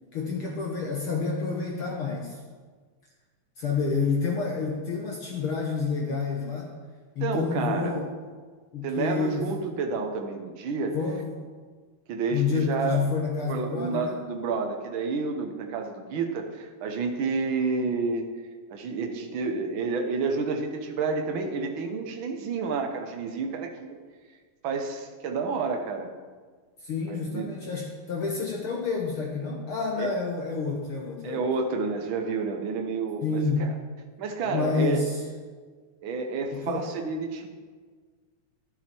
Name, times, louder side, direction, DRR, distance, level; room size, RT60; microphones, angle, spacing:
voice 1, 0.1-2.4 3.6-6.7 7.1-8.1 8.7-9.5 10.9-11.4 12.3-14.2 26.8-31.5 33.2-33.7 34.4-35.2 36.5-36.9, left 4 dB, 60° left, 0 dB, 1.5 m, -29 dB
voice 2, 7.2-8.0 8.8-11.0 12.1-13.1 13.5-18.3 18.7-24.0 24.6-26.1 27.1-27.5 30.0-30.1 31.2-33.7 34.2-35.0 36.0-37.5, right 4 dB, 65° right, 4 dB, 1.2 m, -30 dB
11.5 x 11.0 x 4.5 m, 1.5 s
omnidirectional pair, 3.6 m